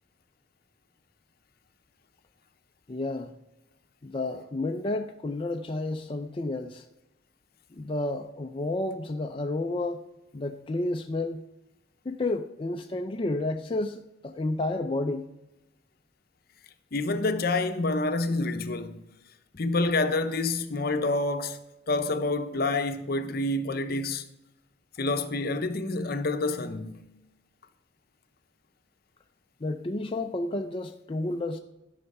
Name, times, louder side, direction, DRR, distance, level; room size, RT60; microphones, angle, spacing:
voice 1, 2.9-3.3 4.0-6.8 7.7-10.0 10.3-11.4 12.1-15.3 29.6-31.6, left 2 dB, 30° left, 0.4 m, -31 dB
voice 2, 16.9-19.0 19.6-21.6 21.9-24.3 25.0-27.1, left 2 dB, 55° left, 0.8 m, -28 dB
13.0 x 5.7 x 5.4 m
head